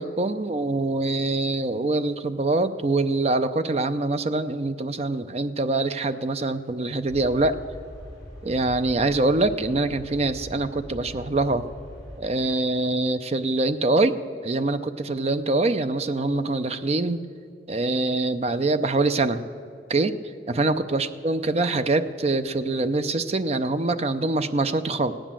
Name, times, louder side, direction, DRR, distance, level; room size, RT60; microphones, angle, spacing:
voice 1, 0.0-7.6 8.4-11.7 12.2-14.2 14.4-17.2 17.7-19.4 19.9-20.1 20.5-25.1, right 2 dB, 35° right, 10 dB, 0.5 m, -24 dB
sound 1, 7.1-12.2, equal, 5° right, 4.7 m, -42 dB
16.5 x 10.5 x 7.4 m, 2.5 s
head